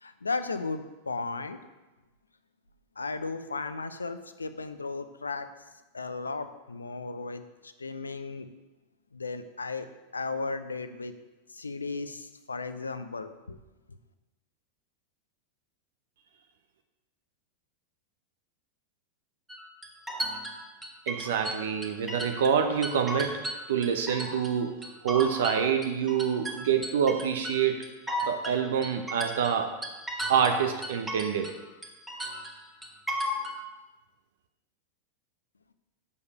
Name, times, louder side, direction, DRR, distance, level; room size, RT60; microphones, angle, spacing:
voice 1, 0.0-1.6 3.0-5.5 5.9-8.5 9.1-9.9 10.1-11.1 11.5-13.6, left 3 dB, 75° left, 10 dB, 0.6 m, -35 dB
sound 1, 19.5-22.6 22.8-24.5 24.8-31.6 31.8-33.6, equal, 10° right, 1.5 m, -35 dB
voice 2, 21.1-23.4 23.7-24.7 25.0-27.8 28.2-29.7 30.3-31.5, right 7 dB, 60° right, 5 dB, 0.8 m, -26 dB
7.0 x 6.5 x 6.7 m, 1.1 s
figure-of-eight pair, 90°, 0 cm